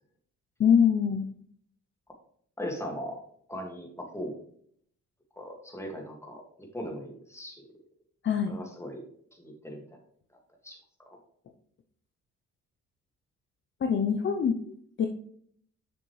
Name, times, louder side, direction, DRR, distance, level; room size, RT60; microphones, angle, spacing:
voice 1, 0.6-1.3 8.2-8.5 13.8-14.6 15.0-15.1, left 7 dB, 40° left, 5 dB, 0.7 m, -23 dB
voice 2, 2.6-3.2 3.5-4.4 5.4-7.6 8.5-9.1 9.4-9.8 10.6-10.8 11.1-11.2, equal, 10° left, 1 dB, 2.0 m, -39 dB
6.9 x 6.4 x 3.2 m, 0.62 s
cardioid pair, 90°, 30 cm